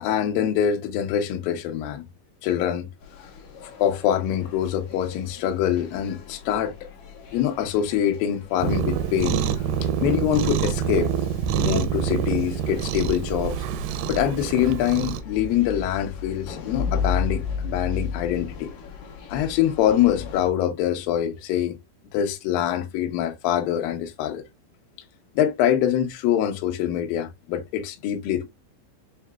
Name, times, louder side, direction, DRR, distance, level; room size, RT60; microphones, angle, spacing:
voice 1, 0.0-2.1 2.4-2.9 3.8-6.7 7.3-9.4 10.0-11.1 11.6-13.6 14.1-18.7 19.3-21.8 22.1-24.4 25.4-28.5, left 10 dB, 85° left, 2.0 m, -24 dB
sound 1, 3.0-20.5, left 5 dB, 65° left, 2.0 m, -36 dB
Cat, 8.6-15.2, right 8 dB, 85° right, 2.4 m, -26 dB
7.1 x 2.9 x 2.2 m
omnidirectional pair, 5.5 m